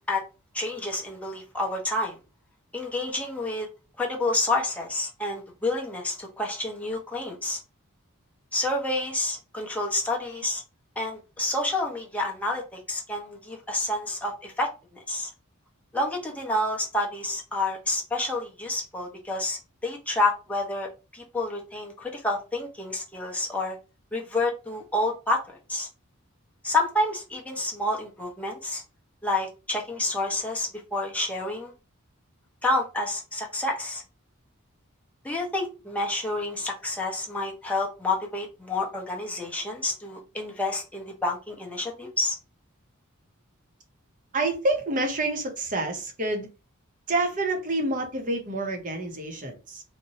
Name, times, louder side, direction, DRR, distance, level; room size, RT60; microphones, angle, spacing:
voice 1, 0.5-2.2 2.7-3.7 4.0-7.6 8.5-10.6 11.0-14.7 15.1-15.3 15.9-23.8 24.1-25.9 26.6-28.8 29.2-31.7 32.6-34.0 35.2-42.3, left 2 dB, 5° left, 0.6 m, -29 dB
voice 2, 44.3-46.5 47.1-49.8, right 2 dB, 35° right, 0.6 m, -28 dB
2.8 x 2.0 x 2.7 m
head